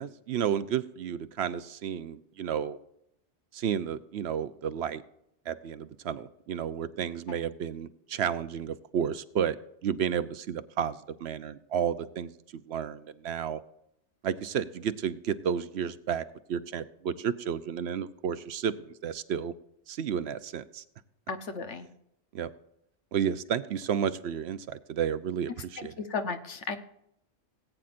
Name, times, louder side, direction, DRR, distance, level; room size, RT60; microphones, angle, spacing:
voice 1, 0.0-2.8 3.5-5.0 5.5-9.6 9.8-12.3 12.7-13.6 14.2-16.2 16.5-19.5 19.9-20.8 22.3-22.5 23.1-25.9, right 8 dB, 70° right, 13 dB, 0.9 m, -32 dB
voice 2, 21.3-21.9 25.8-26.8, left 4 dB, 80° left, 8 dB, 1.3 m, -34 dB
18.5 x 8.9 x 2.5 m, 0.78 s
omnidirectional pair, 1.2 m